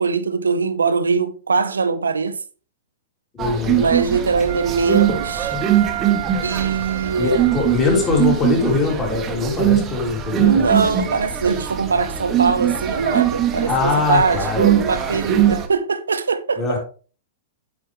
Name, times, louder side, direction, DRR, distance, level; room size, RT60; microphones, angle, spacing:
voice 1, 0.0-2.4 3.8-5.6 6.4-7.4 10.4-16.8, right 5 dB, 70° right, 0.7 m, -21 dB
voice 2, 3.4-3.8 7.2-10.6 13.6-14.6 16.6-16.8, left 4 dB, 20° left, 3.4 m, -21 dB
sound 1, 3.4-15.7, right 10 dB, 25° right, 1.2 m, -22 dB
Wind instrument woodwind instrument, 4.5-8.8, right 14 dB, 50° right, 1.5 m, -32 dB
9.5 x 6.2 x 3.4 m
figure-of-eight pair, 105°, 0 cm